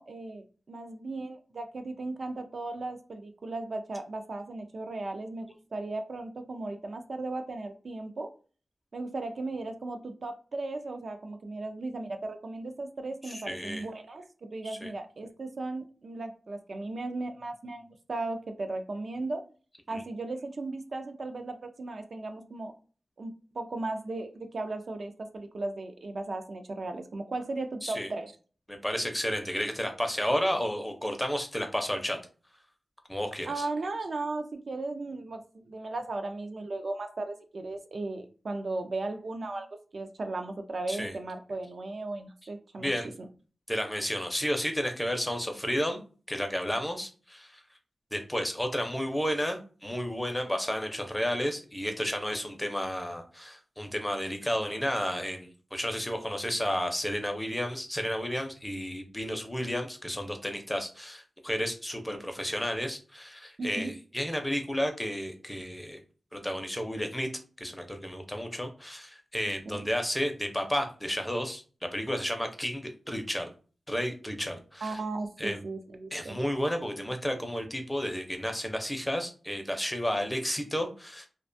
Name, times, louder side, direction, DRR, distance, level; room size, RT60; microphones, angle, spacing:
voice 1, 0.0-8.3 8.9-19.4 19.9-22.7 23.2-28.3 33.5-39.7 39.9-42.9 63.6-63.9 69.7-69.8 74.8-76.4, right 2 dB, 65° right, 5 dB, 0.4 m, -36 dB
voice 2, 13.2-13.8 14.6-14.9 19.9-20.0 27.8-28.1 28.7-32.2 33.1-33.7 40.9-41.2 42.8-43.1 43.7-46.0 46.3-47.6 48.1-66.0 66.3-67.3 67.6-71.6 71.9-73.5 73.9-75.0 75.4-75.6 76.1-81.3, equal, 10° left, 5 dB, 0.5 m, -32 dB
2.4 x 2.2 x 2.5 m, 0.37 s
wide cardioid pair, 65°, 0 cm